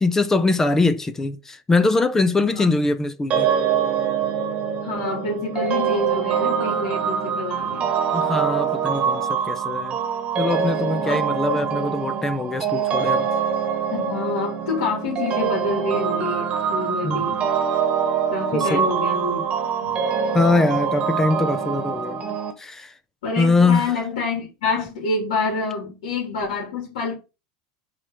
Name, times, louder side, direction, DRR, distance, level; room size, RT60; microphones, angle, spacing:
voice 1, 0.0-3.5 8.1-10.0 10.4-13.3 17.0-17.3 18.5-18.9 20.3-22.2 22.6-22.9 23.4-23.9, left 3 dB, 10° left, 0.5 m, -22 dB
sound 1, 3.3-22.5, right 7 dB, 30° right, 1.3 m, -24 dB
voice 2, 4.8-7.9 11.0-11.6 13.9-17.5 18.3-19.4 19.8-19.9 23.2-27.1, left 3 dB, 90° left, 2.9 m, -27 dB
5.1 x 4.4 x 5.6 m
supercardioid pair, 150°, 4 cm